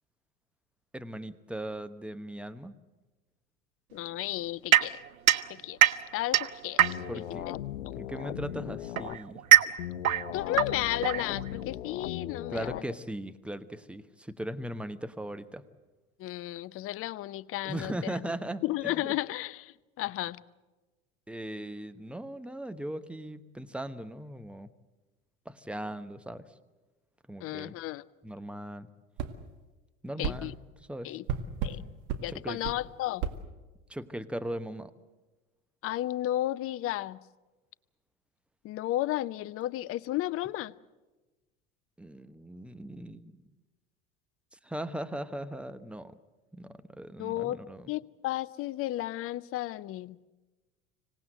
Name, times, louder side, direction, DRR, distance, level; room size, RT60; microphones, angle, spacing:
voice 1, 0.9-2.7 7.1-7.5 8.0-9.4 12.5-15.6 17.6-19.1 21.3-24.7 25.4-26.6 27.3-27.7 28.2-28.9 30.0-30.6 30.9-31.2 32.3-32.6 33.9-34.9 42.0-43.4 44.5-46.2 46.5-47.9, right 1 dB, 5° right, 12 dB, 1.0 m, -38 dB
voice 2, 3.9-5.0 5.5-5.8 6.1-6.8 7.1-7.6 10.3-12.8 16.2-18.2 18.6-20.4 27.4-28.0 30.2-30.5 31.0-31.2 31.6-31.8 32.2-33.2 35.8-37.2 38.6-40.7 47.2-47.6 47.9-50.2, left 15 dB, 35° left, 20 dB, 0.6 m, -33 dB
sound 1, 4.7-7.3 8.3-11.7, right 11 dB, 75° right, 0.8 m, -25 dB
sound 2, 6.8-9.2 9.8-12.8, left 12 dB, 65° left, 0.8 m, -38 dB
sound 3, 29.2-29.3 30.2-30.4 31.3-31.8 32.1-32.2 32.6-32.8 33.2-33.4, right 7 dB, 45° right, 1.9 m, -32 dB
25.5 x 18.0 x 7.7 m, 1.1 s
figure-of-eight pair, 75°, 42 cm